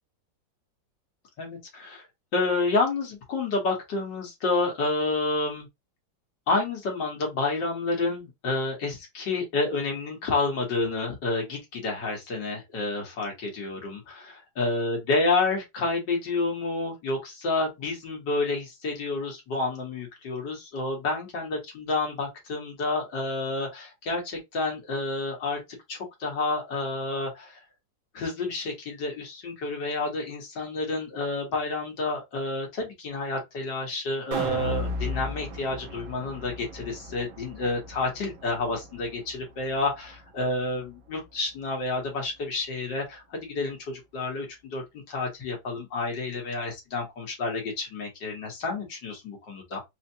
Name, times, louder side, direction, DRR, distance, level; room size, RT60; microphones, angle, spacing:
voice 1, 1.4-2.0 2.3-5.7 6.5-25.6 25.9-27.6 28.1-49.8, left 3 dB, 65° left, 2.1 m, -29 dB
sound 1, 34.3-40.5 40.9-41.0, left 1 dB, 90° right, 1.7 m, -36 dB
4.9 x 2.2 x 2.8 m
omnidirectional pair, 2.0 m